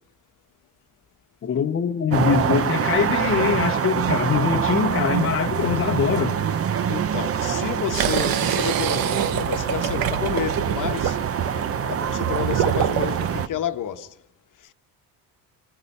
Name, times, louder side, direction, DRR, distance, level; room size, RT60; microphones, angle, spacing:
voice 1, 1.4-6.4, left 7 dB, 30° left, 0.9 m, -23 dB
sound 1, 2.1-13.5, right 8 dB, 35° right, 0.8 m, -25 dB
voice 2, 6.9-11.2 11.9-14.2, left 10 dB, 50° left, 1.1 m, -30 dB
sound 2, 7.9-13.3, right 9 dB, 60° right, 0.9 m, -26 dB
28.0 x 21.5 x 5.4 m
cardioid pair, 165°, 40 cm